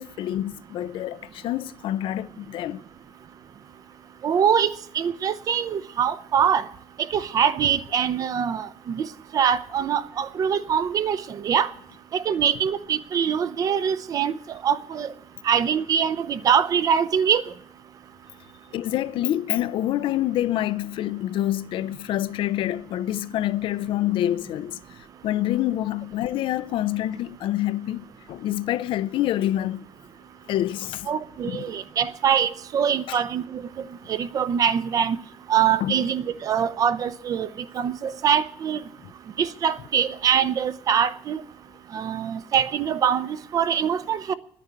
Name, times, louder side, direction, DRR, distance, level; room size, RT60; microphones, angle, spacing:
voice 1, 0.0-2.8 18.7-24.8 25.2-29.8 30.5-31.1 31.4-31.8 33.1-33.2 35.8-36.0, left 13 dB, 60° left, 0.5 m, -27 dB
voice 2, 4.2-6.6 7.1-9.1 9.3-11.7 12.1-14.4 14.6-15.1 15.5-17.4 31.1-33.6 34.1-35.2 35.5-37.5 37.7-38.8 39.4-41.4 41.9-44.3, right 8 dB, 35° right, 0.6 m, -23 dB
10.0 x 10.0 x 9.5 m
cardioid pair, 180°, 10 cm